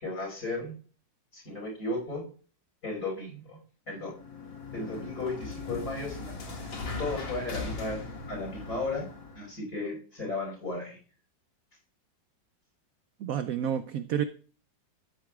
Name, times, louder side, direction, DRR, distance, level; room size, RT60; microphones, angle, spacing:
voice 1, 0.0-0.7 1.3-2.2 2.8-3.6 3.9-4.1 4.7-6.7 7.0-8.0 8.3-9.1 9.4-11.0, left 2 dB, 50° left, -2 dB, 5.6 m, -35 dB
sound 1, 4.0-9.5, left 3 dB, 80° left, 2.6 m, -39 dB
voice 2, 13.2-14.2, right 9 dB, 75° right, 11 dB, 0.8 m, -29 dB
13.0 x 9.1 x 2.3 m, 0.40 s
omnidirectional pair, 2.0 m